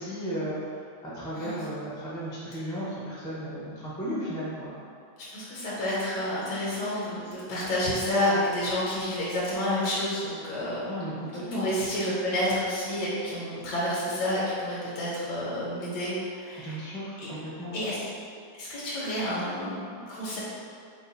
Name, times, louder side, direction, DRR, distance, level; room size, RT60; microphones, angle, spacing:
voice 1, 0.0-4.7 10.9-11.7 16.6-17.8, equal, 5° left, -8 dB, 0.3 m, -35 dB
voice 2, 5.3-10.9 11.5-16.8 17.7-18.0 18.6-20.4, left 1 dB, 80° left, -7 dB, 1.5 m, -29 dB
4.6 x 2.3 x 4.0 m, 2.3 s
omnidirectional pair, 1.8 m